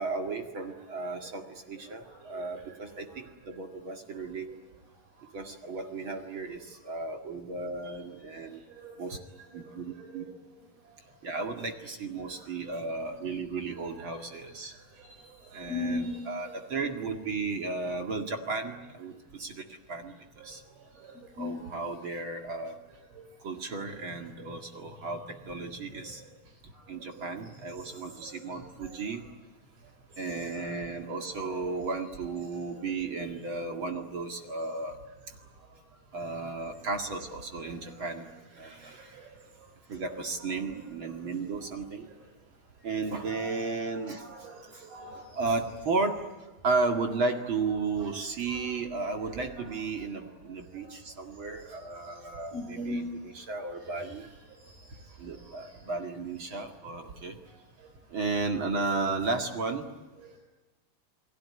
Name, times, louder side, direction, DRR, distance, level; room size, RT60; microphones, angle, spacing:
voice 1, 0.0-4.5 5.3-8.6 9.0-9.2 9.5-10.2 11.2-14.7 15.5-19.6 19.9-20.1 20.4-20.6 21.4-22.8 23.4-26.2 26.9-29.2 30.2-35.0 36.1-39.3 39.9-42.1 42.8-44.2 44.7-44.8 45.3-46.2 46.6-54.3 55.2-57.4 58.1-59.9, right 3 dB, 40° right, 4 dB, 2.3 m, -34 dB
voice 2, 9.9-10.3 12.3-12.6 14.7-16.2 20.9-21.7 23.2-23.3 27.8-28.0 28.3-29.0 30.5-30.6 37.7-37.8 38.9-39.0 43.1-43.5 43.8-45.4 48.0-48.1 48.5-48.6 50.7-50.8 51.7-53.1 53.8-54.1 54.6-54.9 55.3-55.8, left 2 dB, 85° right, 2 dB, 6.1 m, -41 dB
29.5 x 20.0 x 9.7 m, 1.2 s
omnidirectional pair, 4.3 m